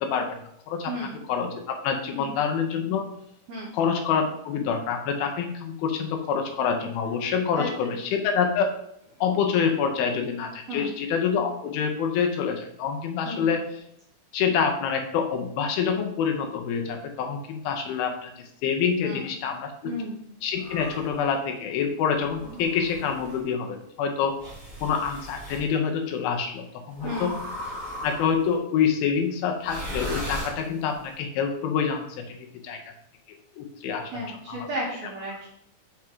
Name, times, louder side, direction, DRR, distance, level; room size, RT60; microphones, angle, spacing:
voice 1, 0.0-0.9 1.3-3.0 3.7-8.7 9.2-13.6 14.3-18.3 18.6-19.9 20.4-24.3 24.8-27.3 28.0-32.8 33.6-34.6, left 6 dB, 85° left, 3 dB, 2.7 m, -26 dB
voice 2, 0.9-1.2 2.1-2.3 3.5-3.7 7.6-8.0 10.7-10.9 13.2-13.5 19.0-19.2 19.8-20.2 22.4-22.6 27.0-27.3 34.1-35.5, equal, 70° right, -4 dB, 1.6 m, -34 dB
sound 1, 20.6-21.2 22.2-23.4 24.4-25.7 27.0-28.5 29.6-31.0, equal, 15° right, 1.6 m, -37 dB
6.3 x 3.6 x 4.5 m, 0.74 s
omnidirectional pair, 4.2 m